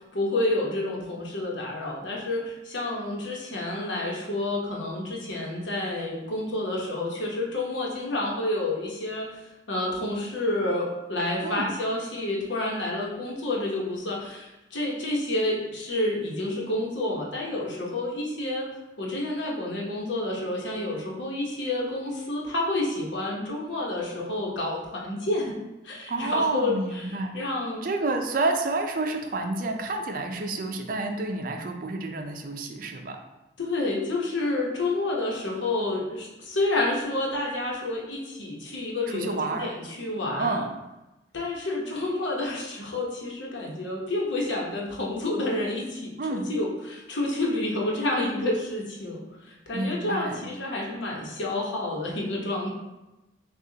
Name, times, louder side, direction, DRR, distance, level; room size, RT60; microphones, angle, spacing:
voice 1, 0.1-9.4 9.7-18.7 19.0-25.5 25.8-27.1 27.3-27.9 33.6-40.6 41.3-52.7, left 2 dB, 90° left, -2 dB, 1.0 m, -29 dB
voice 2, 26.1-27.3 27.8-33.2 39.1-39.7 40.3-40.8 46.2-46.5 49.7-50.5, right 2 dB, 50° right, 4 dB, 0.5 m, -29 dB
6.3 x 2.4 x 2.8 m, 1.0 s
head